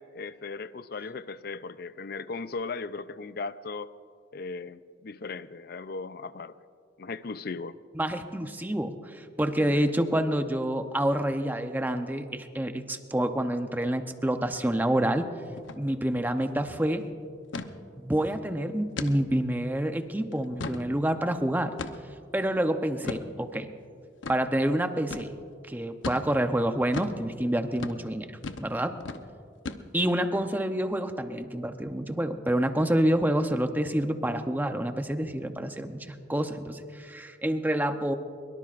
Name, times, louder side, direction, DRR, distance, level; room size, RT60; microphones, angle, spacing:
voice 1, 0.0-3.9 4.3-6.5 7.0-7.8 9.6-9.9, left 4 dB, 55° left, 14 dB, 0.5 m, -37 dB
voice 2, 7.9-15.3 15.8-17.1 18.0-21.7 22.3-23.7 24.3-25.3 25.7-28.3 28.6-29.0 29.9-38.1, right 1 dB, 10° right, 7 dB, 0.7 m, -28 dB
sound 1, 15.6-15.8 16.1-16.2 16.6-16.8 17.5-17.7 18.2-18.3 19.0-19.2 19.7-19.8 20.3-20.9 21.8-22.2 23.0-23.3 24.2-24.4 25.1-25.3 26.0-26.3 26.9-27.2 27.7-28.0 28.4-28.7 29.0-29.2 29.6-30.1, left 3 dB, 90° left, 0.8 m, -36 dB
23.0 x 22.5 x 2.5 m, 2.3 s
head